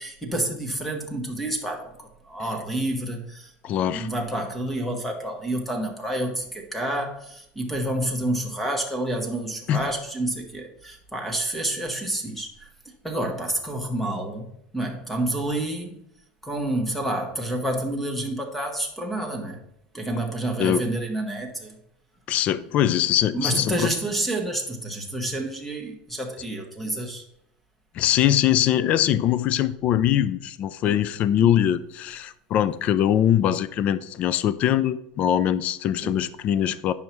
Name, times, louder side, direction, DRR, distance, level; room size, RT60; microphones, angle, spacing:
voice 1, 0.0-3.5 3.8-12.7 13.0-16.0 16.4-19.6 19.9-21.8 23.3-27.2 30.8-31.0 31.4-31.6 36.0-36.2, right 1 dB, 5° left, 3 dB, 1.2 m, -29 dB
voice 2, 3.6-4.1 9.7-9.8 20.6-20.8 22.3-23.9 27.9-36.9, left 11 dB, 35° left, 16 dB, 0.3 m, -22 dB
9.5 x 5.5 x 4.5 m, 0.75 s
supercardioid pair, 165°, 4 cm